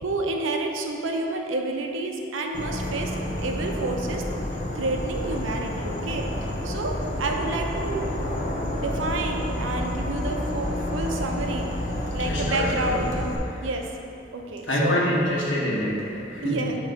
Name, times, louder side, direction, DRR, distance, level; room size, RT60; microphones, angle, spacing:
voice 1, 0.0-4.2 4.5-8.1 8.7-11.7 12.1-13.2 13.6-13.9 14.3-15.0 16.4-16.8, right 2 dB, 90° right, 2 dB, 0.6 m, -29 dB
Insect / Frog, 2.5-13.4, left 1 dB, 40° left, 0.7 m, -29 dB
voice 2, 12.3-12.9 14.7-16.6, equal, 80° left, -5 dB, 1.4 m, -25 dB
6.6 x 3.0 x 5.7 m, 2.7 s
head